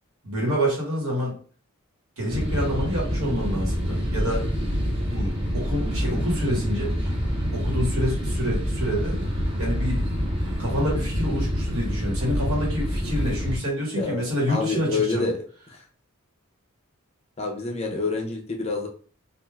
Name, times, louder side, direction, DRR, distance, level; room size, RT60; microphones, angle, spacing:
voice 1, 0.2-1.4 2.2-4.4 5.1-6.9 7.5-9.2 9.6-10.0 10.6-15.3, equal, 80° right, -3 dB, 1.3 m, -27 dB
sound 1, 2.3-13.6, equal, 25° right, 0.7 m, -26 dB
voice 2, 13.9-15.4 15.7-15.8 17.4-18.9, left 3 dB, 30° left, 2 dB, 0.5 m, -27 dB
3.4 x 2.4 x 2.3 m, 0.42 s
head